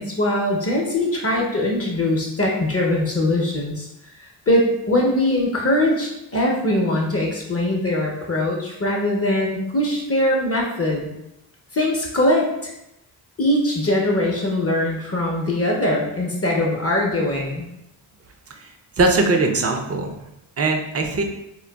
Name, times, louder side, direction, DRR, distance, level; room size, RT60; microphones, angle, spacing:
voice 1, 0.0-3.9 4.2-11.1 11.7-12.7 13.4-17.6, left 1 dB, 30° left, -1 dB, 0.6 m, -21 dB
voice 2, 19.0-20.3 20.6-21.2, right 3 dB, 30° right, 3 dB, 0.5 m, -20 dB
3.7 x 2.2 x 2.2 m, 0.87 s
cardioid pair, 55°, 47 cm